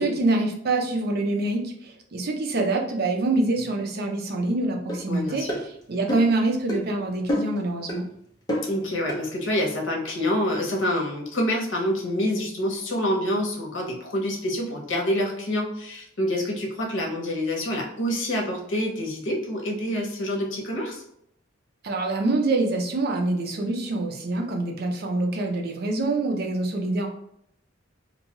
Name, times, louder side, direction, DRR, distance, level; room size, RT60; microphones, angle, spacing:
voice 1, 0.0-8.1 21.8-27.1, right 2 dB, 55° right, 2 dB, 0.5 m, -25 dB
sound 1, 4.9-5.0 5.5-5.6 6.1-6.3 6.7-6.8 7.3-7.6 7.9-8.0 8.5-8.7 9.1-9.2, equal, 20° left, 0.7 m, -27 dB
voice 2, 5.1-5.5 8.7-21.0, left 1 dB, 90° left, 0 dB, 0.8 m, -27 dB
2.6 x 2.2 x 2.9 m, 0.73 s
head